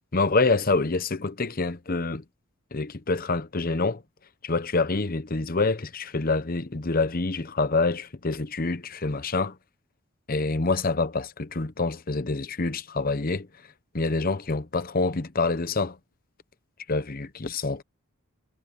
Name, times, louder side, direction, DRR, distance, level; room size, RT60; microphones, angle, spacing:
voice 1, 0.1-2.2 2.7-4.0 4.4-9.6 10.3-13.5 13.9-16.0 16.9-17.8, left 3 dB, 40° left, 0.9 m, -26 dB
head